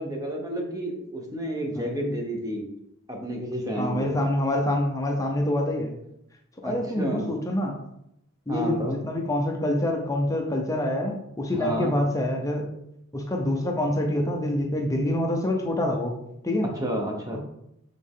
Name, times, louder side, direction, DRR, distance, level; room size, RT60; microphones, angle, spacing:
voice 1, 0.0-2.7 3.1-4.1 6.6-7.3 8.5-8.9 11.5-11.9 16.8-17.4, equal, 15° right, 1 dB, 1.0 m, -30 dB
voice 2, 3.8-6.0 6.6-7.8 8.5-12.7 13.1-16.2 16.4-16.7 17.3-17.4, left 1 dB, 15° left, 1 dB, 0.7 m, -26 dB
7.6 x 3.7 x 3.7 m, 0.79 s
head